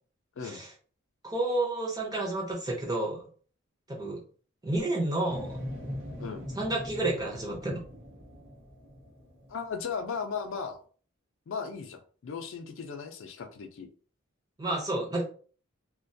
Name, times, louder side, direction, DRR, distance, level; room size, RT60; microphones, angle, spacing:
voice 1, 1.2-3.2 3.9-4.2 4.6-5.6 6.6-7.8 14.6-15.2, right 2 dB, 15° right, -1 dB, 0.5 m, -30 dB
sound 1, 5.3-10.2 10.7-10.8, left 1 dB, 55° right, 0.9 m, -41 dB
voice 2, 9.5-10.8 11.5-13.9, left 5 dB, 60° left, 6 dB, 0.4 m, -36 dB
2.3 x 2.2 x 2.6 m, 0.42 s
head